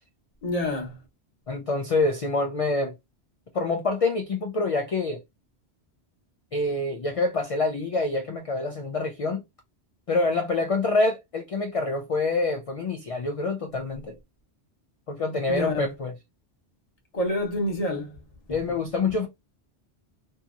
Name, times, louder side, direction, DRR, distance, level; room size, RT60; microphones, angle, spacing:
voice 1, 0.4-1.0 15.5-15.9 17.1-18.2 18.5-18.6, left 1 dB, 35° left, 0.9 m, -27 dB
voice 2, 1.5-2.9 3.5-5.2 6.5-9.4 10.1-14.2 15.1-16.1 18.5-19.3, left 3 dB, 60° left, 0.3 m, -26 dB
2.7 x 2.7 x 2.4 m
omnidirectional pair, 1.1 m